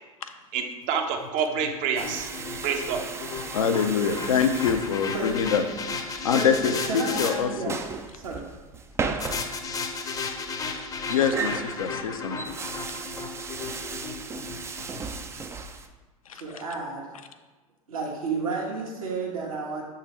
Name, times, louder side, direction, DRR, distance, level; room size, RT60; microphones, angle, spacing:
voice 1, 0.5-2.3 2.6-3.0, right 6 dB, 40° right, 5 dB, 0.8 m, -27 dB
sound 1, 1.2-7.3 9.2-15.4, left 4 dB, 20° left, 0.7 m, -35 dB
sound 2, 2.0-15.9, right 4 dB, 15° right, 0.4 m, -36 dB
voice 2, 3.5-5.6 6.2-7.7 9.2-9.3 10.2-10.3 11.1-12.6 16.3-16.4, left 7 dB, 70° left, 7 dB, 0.6 m, -25 dB
voice 3, 6.3-7.8 8.2-8.4 16.4-17.1 17.9-19.8, right 3 dB, 70° right, -3 dB, 1.5 m, -31 dB
7.2 x 3.8 x 4.2 m, 1.2 s
figure-of-eight pair, 80°, 18 cm